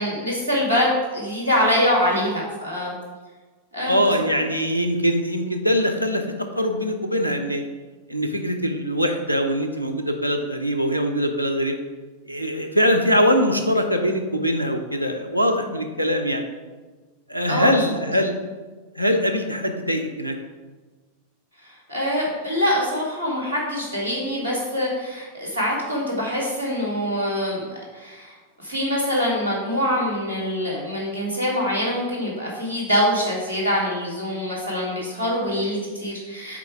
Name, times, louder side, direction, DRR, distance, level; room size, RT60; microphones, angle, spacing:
voice 1, 0.0-2.9 3.7-4.0 17.5-17.8 21.6-36.6, equal, 75° right, -3 dB, 2.1 m, -24 dB
voice 2, 3.8-6.3 6.5-7.6 8.1-11.8 12.3-16.4 17.3-18.4 19.0-20.4, equal, 90° left, 5 dB, 0.7 m, -22 dB
5.9 x 4.4 x 4.8 m, 1.3 s
figure-of-eight pair, 90°, 0 cm